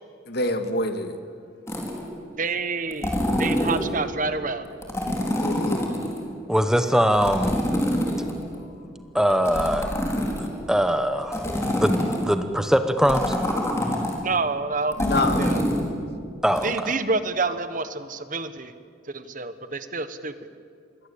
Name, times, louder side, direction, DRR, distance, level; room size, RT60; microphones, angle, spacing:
voice 1, 0.3-1.2 5.4-5.9 8.6-8.7 15.0-15.6, left 1 dB, 55° left, 8 dB, 2.0 m, -26 dB
sound 1, 1.7-2.1 2.9-3.9 4.8-6.2 7.1-8.6 9.3-10.6 11.3-12.3 13.0-14.1 14.9-15.8 16.6-16.7, equal, 15° left, 4.5 m, -25 dB
voice 2, 2.4-4.8 14.2-15.6 16.6-18.7 19.1-20.3, right 3 dB, 45° right, 11 dB, 1.3 m, -28 dB
voice 3, 6.5-7.6 9.1-9.9 10.4-11.4 11.7-13.3 16.4-16.9, equal, 5° right, 8 dB, 1.0 m, -22 dB
27.0 x 22.0 x 8.5 m, 2.2 s
head